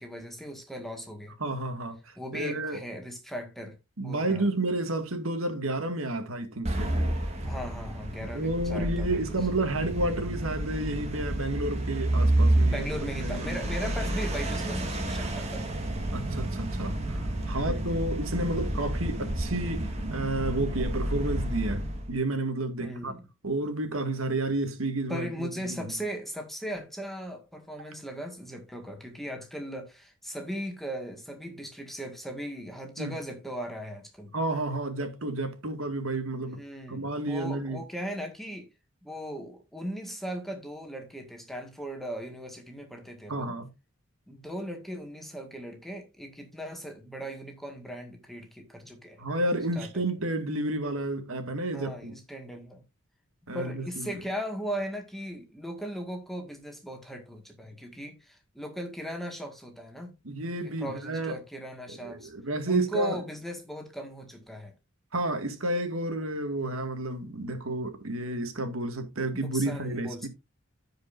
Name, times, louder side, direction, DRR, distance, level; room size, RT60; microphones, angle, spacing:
voice 1, 0.0-1.3 2.2-4.5 7.4-9.4 12.6-15.7 17.6-18.2 22.8-23.3 25.1-34.3 36.4-38.7 39.0-43.6 44.3-49.2 49.8-50.0 51.7-52.8 53.5-60.1 60.6-62.3 62.7-64.7 69.3-70.3, equal, ahead, 1.7 m, -38 dB
voice 2, 1.4-2.0 2.3-2.8 4.0-6.9 8.2-12.9 13.2-13.7 16.1-23.1 23.4-25.8 33.0-33.1 34.3-36.6 36.9-37.8 43.3-43.7 49.2-52.1 53.5-54.1 60.3-61.4 61.9-63.2 65.1-70.3, right 2 dB, 85° right, 1.9 m, -31 dB
sound 1, 6.7-22.2, right 1 dB, 30° right, 1.9 m, -30 dB
15.5 x 5.2 x 2.6 m
head